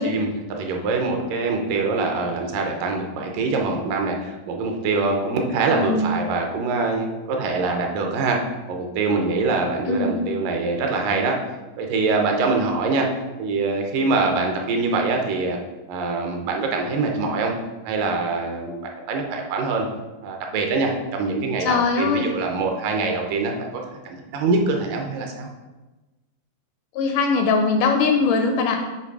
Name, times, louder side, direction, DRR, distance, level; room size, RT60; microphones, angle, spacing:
voice 1, 0.0-8.4 8.7-11.4 11.8-13.1 13.4-15.6 15.9-17.5 17.8-19.9 20.2-25.5, right 3 dB, 80° right, 2 dB, 2.4 m, -24 dB
voice 2, 5.7-6.1 9.9-10.3 21.6-22.3 26.9-28.8, left 4 dB, 80° left, 4 dB, 1.9 m, -21 dB
8.3 x 3.2 x 4.7 m, 1.2 s
omnidirectional pair, 4.0 m